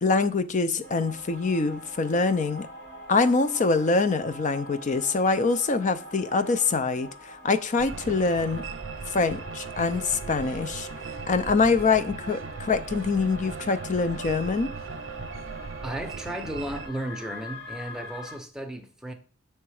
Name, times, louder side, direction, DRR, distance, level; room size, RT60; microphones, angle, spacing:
voice 1, 0.0-2.7 3.1-8.6 9.1-10.9 11.3-14.7, left 4 dB, 40° left, 0.5 m, -24 dB
sound 1, 0.8-18.4, right 1 dB, 60° left, 2.2 m, -43 dB
sound 2, 7.8-16.9, right 4 dB, 75° right, 0.6 m, -39 dB
voice 2, 15.8-19.1, right 1 dB, 5° right, 0.7 m, -34 dB
6.9 x 3.2 x 4.8 m
head